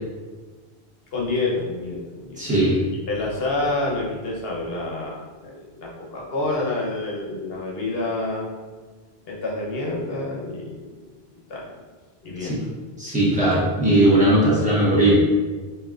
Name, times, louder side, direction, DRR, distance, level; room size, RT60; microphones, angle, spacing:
voice 1, 1.1-8.6 9.3-11.0 11.5-11.8 12.2-12.6, left 2 dB, 70° left, -3 dB, 1.1 m, -28 dB
voice 2, 2.4-2.8 12.4-12.6 13.0-15.2, right 1 dB, 5° right, -9 dB, 1.1 m, -18 dB
5.4 x 2.8 x 2.5 m, 1.4 s
omnidirectional pair, 1.1 m